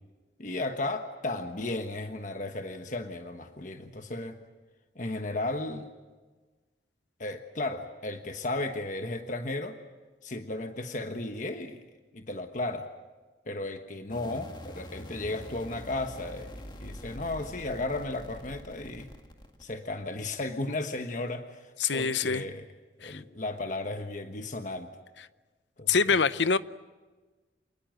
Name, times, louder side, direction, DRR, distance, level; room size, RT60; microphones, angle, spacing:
voice 1, 0.4-4.4 4.9-5.9 7.2-9.8 10.2-11.8 12.1-12.9 13.5-19.1 19.6-22.7 23.0-24.9 25.8-26.2, left 2 dB, 45° left, 1.3 m, -34 dB
sound 1, 14.1-20.2, equal, 25° left, 2.0 m, -45 dB
voice 2, 21.8-22.4 23.0-23.2 25.9-26.6, left 5 dB, 85° left, 0.8 m, -25 dB
27.5 x 20.0 x 7.8 m
head